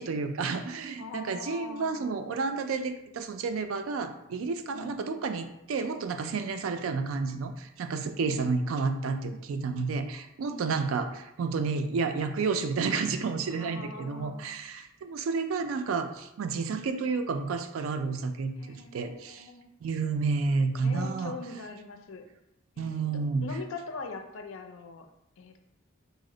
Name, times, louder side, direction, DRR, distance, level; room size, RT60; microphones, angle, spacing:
voice 1, 0.0-19.5 19.8-21.3 22.8-23.5, right 4 dB, 80° right, 8 dB, 0.4 m, -31 dB
voice 2, 1.0-2.6 4.7-5.1 8.1-9.3 10.5-10.7 13.5-14.5 18.6-19.7 20.8-22.3 22.8-22.9 23.4-25.1 25.4-25.7, left 4 dB, 70° left, 5 dB, 0.4 m, -42 dB
4.0 x 2.0 x 3.7 m, 0.85 s
head